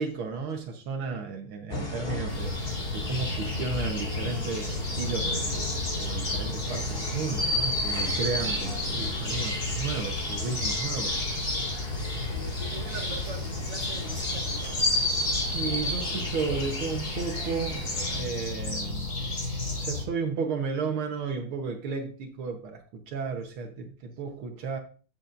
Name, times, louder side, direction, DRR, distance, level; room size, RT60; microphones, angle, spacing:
voice 1, 0.0-11.2 15.5-17.9 18.1-19.1 19.7-24.8, right 5 dB, 75° right, 2.0 m, -33 dB
sound 1, 1.7-18.2, left 1 dB, 30° left, 2.2 m, -32 dB
sound 2, 2.3-20.0, left 2 dB, 45° left, 4.2 m, -33 dB
voice 2, 12.3-14.9, right 4 dB, 40° right, 1.3 m, -42 dB
13.5 x 7.1 x 2.6 m
omnidirectional pair, 2.3 m